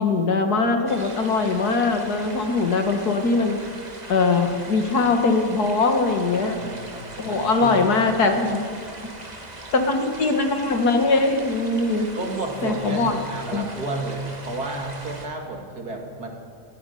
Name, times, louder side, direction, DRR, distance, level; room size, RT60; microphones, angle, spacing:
voice 1, 0.0-3.8 4.1-6.6 7.2-8.7 9.7-12.1 12.6-13.1 13.5-13.7, left 3 dB, 70° left, 5 dB, 2.3 m, -21 dB
sound 1, 0.9-15.3, right 2 dB, 25° right, 1.8 m, -40 dB
voice 2, 6.3-7.9 12.1-16.3, right 2 dB, 65° right, 2 dB, 3.2 m, -32 dB
28.0 x 10.0 x 9.4 m, 2.4 s
omnidirectional pair, 1.7 m